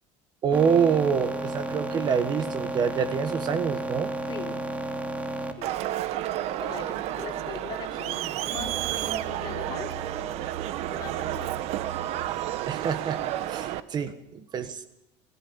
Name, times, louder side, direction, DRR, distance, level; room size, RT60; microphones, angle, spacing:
voice 1, 0.4-4.1 12.7-13.2 13.5-14.8, right 7 dB, 35° right, 11 dB, 1.4 m, -26 dB
sound 1, 0.5-5.5, right 1 dB, 10° right, 2.4 m, -32 dB
voice 2, 4.3-4.6 5.6-5.8 6.6-10.3 10.9-11.6 14.0-14.1, left 5 dB, 35° left, 2 dB, 4.0 m, -40 dB
Crowd, 5.6-13.8, right 12 dB, 60° right, 1.1 m, -31 dB
25.5 x 15.5 x 7.1 m, 0.88 s
cardioid pair, 145°, 12 cm